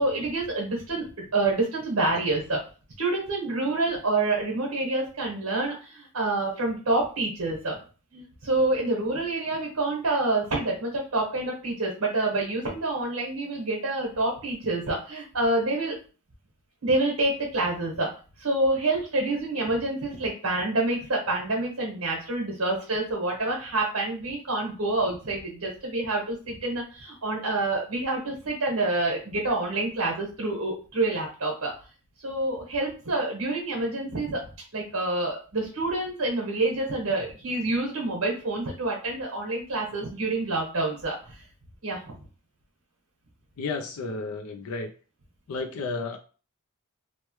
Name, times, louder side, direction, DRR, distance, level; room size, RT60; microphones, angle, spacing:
voice 1, 0.0-2.6 3.0-7.8 8.1-15.9 16.8-18.1 18.4-31.7 32.2-34.4 34.7-41.4 41.8-42.0, right 2 dB, 80° right, -2 dB, 1.1 m, -27 dB
voice 2, 43.6-44.9 45.5-46.2, left 3 dB, 85° left, 6 dB, 0.4 m, -32 dB
3.1 x 2.1 x 3.0 m, 0.37 s
head